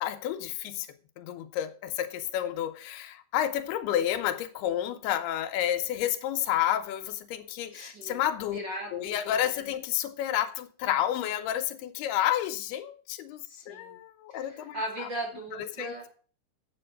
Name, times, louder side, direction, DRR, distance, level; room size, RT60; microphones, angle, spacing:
voice 1, 0.0-0.9 1.2-8.6 8.9-15.1 15.6-15.9, left 11 dB, 85° left, 2.8 m, -30 dB
voice 2, 7.7-8.2 8.5-9.7 13.5-14.0 14.3-16.1, right 1 dB, 35° right, 2.3 m, -38 dB
7.8 x 7.6 x 6.6 m
omnidirectional pair, 4.6 m